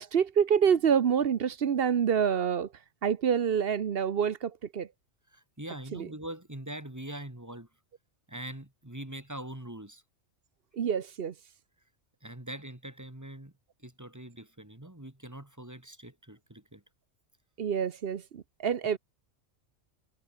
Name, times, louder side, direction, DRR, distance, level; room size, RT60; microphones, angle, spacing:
voice 1, 0.0-2.7 3.0-4.9 5.9-6.1 10.7-11.3 17.6-19.0, right 7 dB, 55° right, 1.0 m, -27 dB
voice 2, 5.3-7.7 8.3-10.0 12.2-13.5 13.8-16.8, right 1 dB, 15° right, 2.4 m, -43 dB
omnidirectional pair, 1.3 m